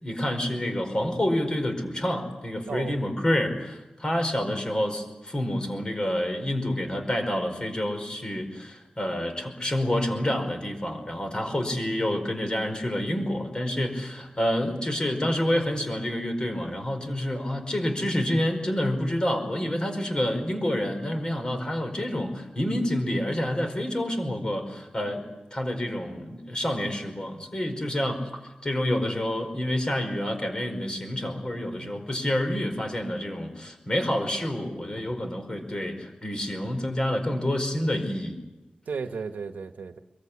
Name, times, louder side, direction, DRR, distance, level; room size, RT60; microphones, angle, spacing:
voice 1, 0.0-25.2 25.5-28.2 28.6-38.3, left 1 dB, 30° left, 4.9 m, -28 dB
voice 2, 2.6-3.0 11.5-11.7 31.7-31.9 38.9-40.0, right 5 dB, 85° right, 1.3 m, -35 dB
23.5 x 23.0 x 8.6 m
wide cardioid pair, 105°, 3 cm